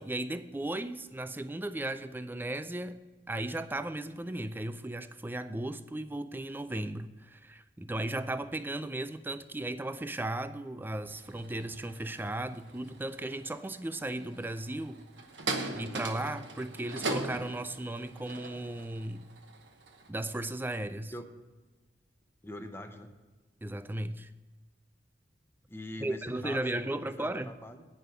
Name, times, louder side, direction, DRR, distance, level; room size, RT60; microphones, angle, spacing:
voice 1, 0.0-3.0 3.3-15.0 15.7-19.3 20.1-21.1 23.6-24.3 26.0-27.5, right 1 dB, 10° right, 0.4 m, -36 dB
sound 1, 11.1-20.1, right 3 dB, 80° right, 1.1 m, -40 dB
voice 2, 22.4-23.1 25.7-27.8, left 1 dB, 15° left, 0.8 m, -43 dB
9.7 x 5.3 x 7.7 m
head